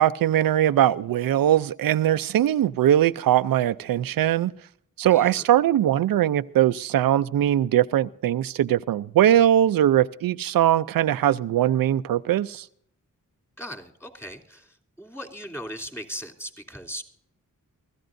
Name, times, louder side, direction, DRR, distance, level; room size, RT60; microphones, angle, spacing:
voice 1, 0.0-4.5 5.0-12.7, right 11 dB, 85° right, 0.5 m, -21 dB
voice 2, 5.1-5.5 13.6-17.0, equal, 5° left, 3.1 m, -38 dB
23.5 x 14.5 x 2.6 m
cardioid pair, 55°, 34 cm